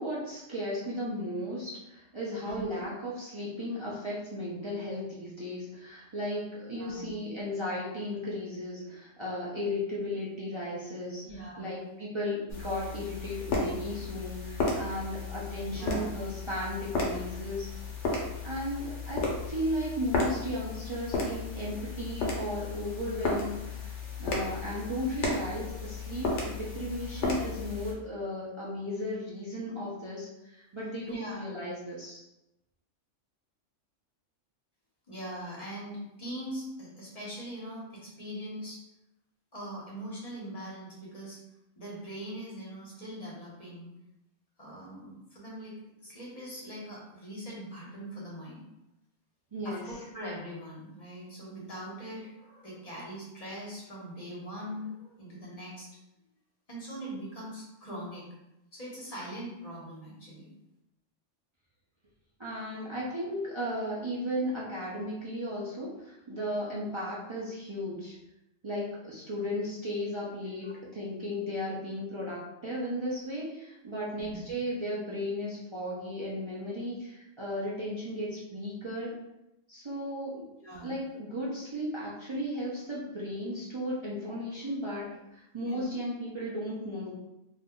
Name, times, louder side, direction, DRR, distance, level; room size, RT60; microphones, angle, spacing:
voice 1, 0.0-11.2 11.6-17.7 18.4-23.9 24.2-32.2 49.5-49.8 62.4-68.2 68.6-70.7 70.9-79.1 79.7-80.4 80.8-85.1 85.3-87.1, left 1 dB, 50° right, -7 dB, 0.3 m, -35 dB
voice 2, 6.7-7.1 11.2-11.8 15.6-16.1 30.8-31.4 35.1-38.8 39.5-41.4 41.8-43.9 44.6-45.8 46.0-48.6 49.6-55.9 56.7-58.2 58.7-60.5 70.6-70.7 74.0-74.4 80.6-80.9 85.6-85.8, equal, 35° left, -5 dB, 1.0 m, -41 dB
sound 1, 12.5-27.9, left 3 dB, 70° left, 1.0 m, -34 dB
2.6 x 2.2 x 3.6 m, 0.91 s
omnidirectional pair, 1.3 m